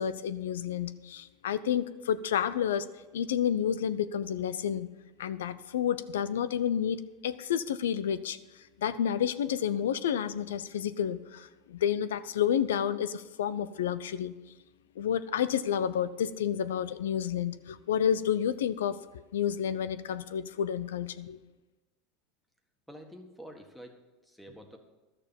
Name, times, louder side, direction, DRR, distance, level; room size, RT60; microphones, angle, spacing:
voice 1, 0.0-2.9 3.1-4.9 5.2-7.0 7.2-8.4 8.8-14.3 15.0-19.0 19.3-21.4, left 9 dB, 85° left, 0.5 m, -30 dB
voice 2, 22.9-24.8, equal, 5° left, 1.7 m, -48 dB
12.0 x 6.7 x 7.0 m
hypercardioid pair, 100°, 0 cm